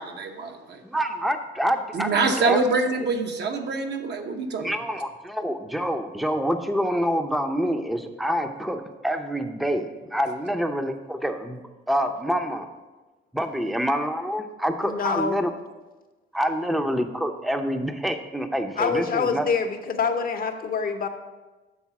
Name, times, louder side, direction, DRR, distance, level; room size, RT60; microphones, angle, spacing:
voice 1, 0.0-0.8 1.9-4.7, right 3 dB, 60° right, 4 dB, 0.9 m, -25 dB
voice 2, 0.8-2.6 4.6-11.6 11.9-12.7 13.3-15.5 16.3-19.5, equal, ahead, 7 dB, 0.6 m, -27 dB
voice 3, 14.8-15.5 18.8-21.1, left 5 dB, 45° left, 6 dB, 0.7 m, -26 dB
7.3 x 3.9 x 5.8 m, 1.2 s
cardioid pair, 90°, 20 cm